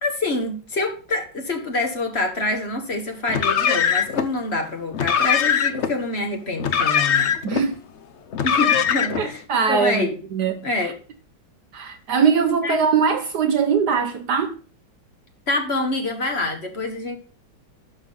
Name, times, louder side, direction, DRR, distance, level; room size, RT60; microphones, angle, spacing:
voice 1, 0.0-7.3 8.4-9.4 9.7-10.1 10.6-10.9 12.5-12.8 15.5-17.2, left 2 dB, 35° left, 1.6 m, -26 dB
Car, 3.3-4.3 4.9-5.9 6.6-7.6 8.3-9.3, left 8 dB, 60° left, 0.7 m, -21 dB
voice 2, 7.4-7.8 9.2-10.9 11.7-14.6, right 6 dB, 65° right, 1.3 m, -22 dB
11.0 x 6.3 x 4.0 m
omnidirectional pair, 2.1 m